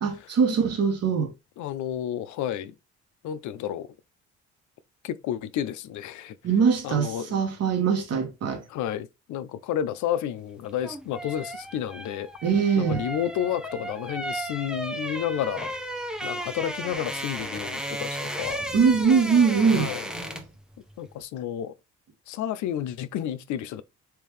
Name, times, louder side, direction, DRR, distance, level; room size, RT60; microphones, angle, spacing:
voice 1, 0.0-1.3 6.4-8.6 12.4-13.0 18.7-19.9, right 6 dB, 55° right, 1.2 m, -22 dB
voice 2, 1.6-2.7 3.2-3.9 5.0-6.4 6.8-7.3 8.7-12.3 12.8-15.7 16.2-18.6 19.7-20.4 21.0-21.7 22.3-23.8, left 10 dB, 75° left, 0.5 m, -31 dB
sound 1, 10.6-20.6 20.9-21.1, right 1 dB, ahead, 0.6 m, -34 dB
3.5 x 2.7 x 3.1 m
cardioid pair, 90°, 30 cm